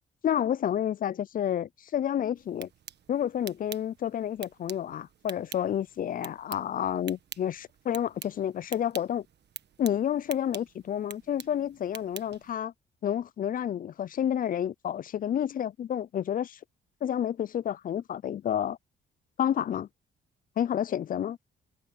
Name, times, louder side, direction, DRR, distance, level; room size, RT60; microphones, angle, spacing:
voice 1, 0.2-2.7 3.1-9.2 9.8-12.7 13.0-16.6 17.0-18.8 19.4-19.9 20.6-21.4, left 10 dB, 45° left, 0.4 m, -30 dB
sound 1, 2.4-12.5, right 9 dB, 60° right, 1.4 m, -47 dB
cardioid pair, 90°, 20 cm